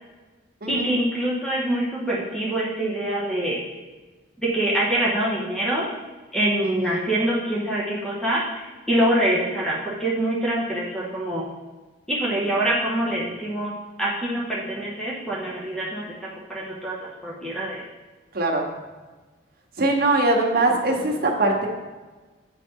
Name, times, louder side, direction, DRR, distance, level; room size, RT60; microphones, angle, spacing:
voice 1, 0.7-3.6 4.4-5.9 6.3-11.5 12.1-13.7 14.0-17.8, right 1 dB, 5° left, -5 dB, 0.8 m, -25 dB
voice 2, 6.6-7.1 18.3-18.7 19.8-21.7, right 2 dB, 50° right, 0 dB, 1.0 m, -22 dB
8.9 x 4.1 x 3.7 m, 1.3 s
head